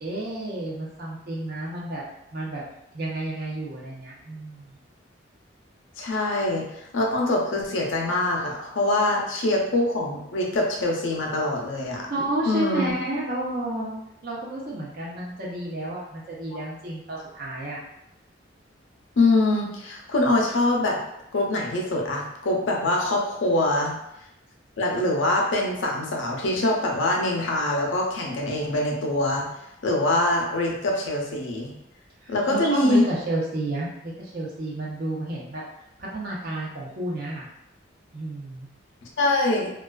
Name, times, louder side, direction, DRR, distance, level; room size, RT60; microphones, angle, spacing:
voice 1, 0.0-2.0 2.3-2.6 2.9-4.8 12.1-17.8 32.2-35.6 36.0-37.5 38.1-38.7, right 1 dB, 50° right, -5 dB, 0.7 m, -31 dB
voice 2, 6.0-6.6 6.9-12.1 12.5-13.0 19.2-21.0 21.3-23.9 24.8-29.4 29.8-31.7 32.3-33.1 39.2-39.7, left 2 dB, 85° left, -1 dB, 0.5 m, -24 dB
2.3 x 2.3 x 2.2 m, 0.81 s
head